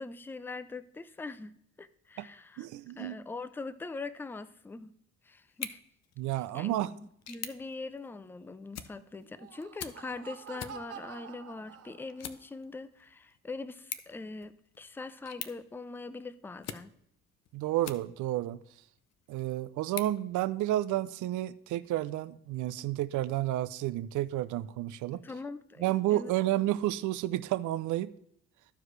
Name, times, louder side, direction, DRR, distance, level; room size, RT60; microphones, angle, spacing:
voice 1, 0.0-2.7 2.9-4.9 5.2-5.8 6.5-16.9 25.1-26.3, left 3 dB, 5° left, 14 dB, 0.4 m, -42 dB
voice 2, 2.6-3.2 6.2-6.9 17.5-18.6 19.3-25.2 25.8-28.1, right 14 dB, 75° right, 13 dB, 0.5 m, -31 dB
sound 1, 5.5-18.5 19.0-21.0, left 9 dB, 60° left, 0.7 m, -47 dB
Laughter, 9.2-12.4, right 8 dB, 50° right, 0.8 m, -48 dB
14.0 x 4.8 x 3.2 m, 0.69 s
cardioid pair, 90°, 30 cm